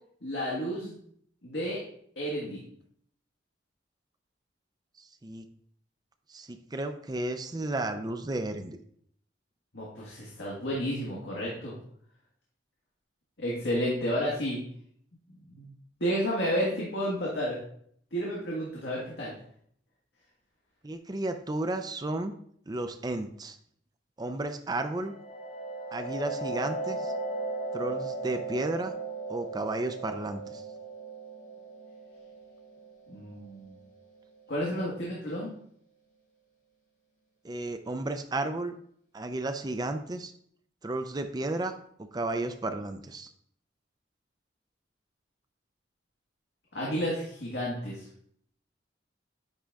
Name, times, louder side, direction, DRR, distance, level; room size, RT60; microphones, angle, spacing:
voice 1, 0.2-1.0 1.4-1.8 2.1-2.6 9.7-11.8 13.4-14.6 15.5-15.7 16.0-17.6 18.1-19.3 33.1-33.8 34.5-35.5 46.7-48.1, equal, 65° left, -5 dB, 1.6 m, -31 dB
voice 2, 5.0-5.5 6.3-8.8 20.8-22.3 22.7-23.6 24.2-25.1 25.9-27.1 27.7-28.9 29.3-30.6 37.4-38.7 39.1-40.3 40.8-41.7 42.0-43.3, right 2 dB, 20° right, 8 dB, 0.5 m, -33 dB
sound 1, 24.9-34.4, right 2 dB, 40° left, 1.9 m, -37 dB
9.8 x 3.8 x 3.5 m, 0.66 s
head